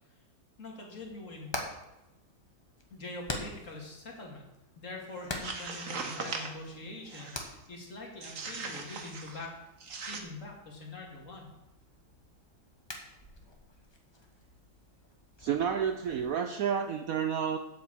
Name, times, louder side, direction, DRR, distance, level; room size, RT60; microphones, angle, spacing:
voice 1, 0.6-1.6 2.9-4.4 4.8-9.5 10.1-11.5, left 2 dB, 40° left, -1 dB, 2.4 m, -44 dB
Hammer, 1.0-16.2, left 1 dB, 15° left, 1.2 m, -46 dB
sound 1, 5.2-6.6 7.1-7.5 8.2-9.5 9.8-10.2, right 4 dB, 45° right, 1.5 m, -39 dB
voice 2, 15.4-17.6, right 8 dB, 90° right, 8 dB, 0.7 m, -30 dB
8.1 x 7.8 x 7.3 m, 0.95 s
omnidirectional pair, 2.2 m